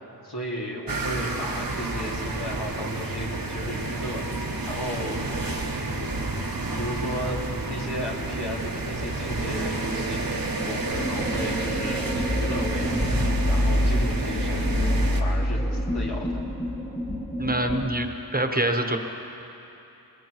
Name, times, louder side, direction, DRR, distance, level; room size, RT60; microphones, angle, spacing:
voice 1, 0.2-4.2 4.6-5.2 5.7-6.1 6.8-7.4 7.7-10.2 10.6-13.1 13.5-14.8 15.2-16.4, equal, 80° left, -3 dB, 2.4 m, -34 dB
sound 1, 0.9-15.2, right 2 dB, 60° right, 1.2 m, -30 dB
sound 2, 10.9-17.9, left 1 dB, 15° left, 1.1 m, -26 dB
voice 2, 17.4-19.0, right 1 dB, 20° right, 4 dB, 1.2 m, -25 dB
21.0 x 20.5 x 3.1 m, 3.0 s
wide cardioid pair, 50°, 39 cm